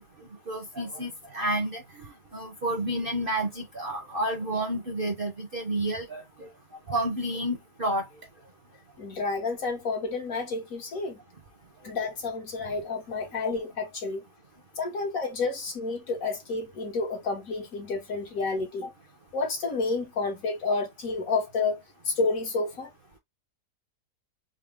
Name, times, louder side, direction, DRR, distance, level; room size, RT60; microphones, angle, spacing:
voice 1, 0.5-1.8 2.3-6.5 6.9-8.0, right 1 dB, 40° right, 0.9 m, -30 dB
voice 2, 9.0-11.2 11.8-14.2 14.8-18.9 19.3-22.9, left 3 dB, 55° left, 1.5 m, -30 dB
3.9 x 2.1 x 3.5 m
omnidirectional pair, 1.8 m